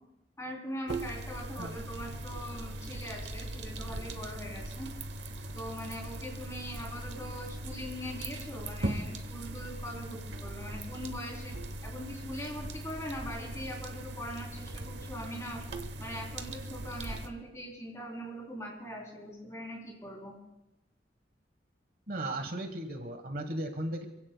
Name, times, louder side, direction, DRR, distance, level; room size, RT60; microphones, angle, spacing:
voice 1, 0.4-4.9 5.5-11.5 11.8-15.6 16.0-20.3, equal, 15° left, -1 dB, 3.3 m, -41 dB
sound 1, 0.9-17.3, right 1 dB, 80° right, 1.0 m, -40 dB
voice 2, 22.1-24.1, right 1 dB, 55° right, 6 dB, 1.3 m, -36 dB
27.0 x 16.5 x 2.2 m, 0.90 s
head